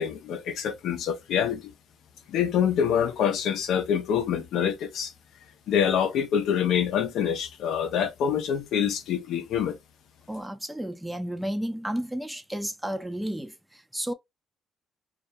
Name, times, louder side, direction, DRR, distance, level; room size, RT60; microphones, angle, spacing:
voice 1, 0.0-1.7 2.3-5.1 5.7-9.8, left 8 dB, 75° left, 0.5 m, -26 dB
voice 2, 10.3-14.1, right 1 dB, 5° right, 0.5 m, -32 dB
2.3 x 2.1 x 2.5 m
supercardioid pair, 75°, 0 cm